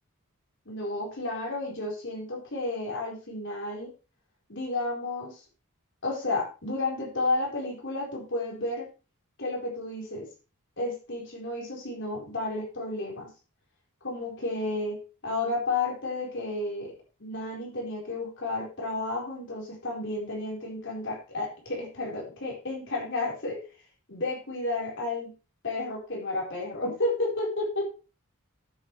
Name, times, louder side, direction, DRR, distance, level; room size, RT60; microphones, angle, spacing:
voice 1, 0.7-3.9 4.5-5.4 6.0-8.9 9.4-10.3 10.8-13.3 14.0-16.9 17.2-23.6 24.1-25.3 25.6-27.8, left 2 dB, 55° left, -1 dB, 4.4 m, -32 dB
13.0 x 8.8 x 3.3 m, 0.32 s
head